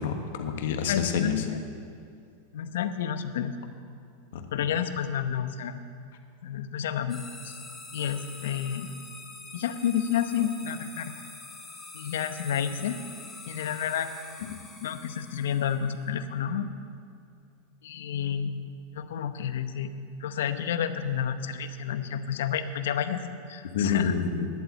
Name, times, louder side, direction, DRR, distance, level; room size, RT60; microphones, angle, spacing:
voice 1, 0.0-1.4 4.3-4.4 23.7-24.5, left 6 dB, 70° left, 5 dB, 1.4 m, -28 dB
voice 2, 0.9-1.6 2.5-3.5 4.5-5.8 6.4-7.6 7.9-8.9 9.5-11.1 11.9-13.0 13.5-14.1 14.4-16.7 17.8-18.6 18.9-19.9 20.2-24.1, left 8 dB, 85° left, 10 dB, 0.8 m, -30 dB
sound 1, 7.1-16.0, left 3 dB, 10° left, 1.2 m, -45 dB
11.0 x 8.0 x 8.6 m, 2.4 s
supercardioid pair, 170°, 0 cm